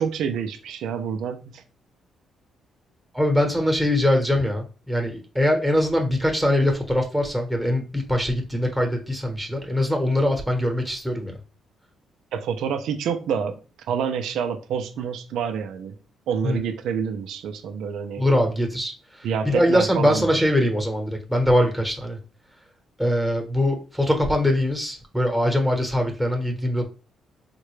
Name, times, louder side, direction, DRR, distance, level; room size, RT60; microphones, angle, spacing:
voice 1, 0.0-1.6 12.3-13.6 13.9-16.0 16.3-18.2 19.2-20.4, right 7 dB, 80° right, 0.5 m, -27 dB
voice 2, 3.1-11.3 16.4-16.6 18.2-22.2 23.0-26.9, left 1 dB, ahead, 1.0 m, -22 dB
3.7 x 2.2 x 3.1 m
cardioid pair, 90°, 0 cm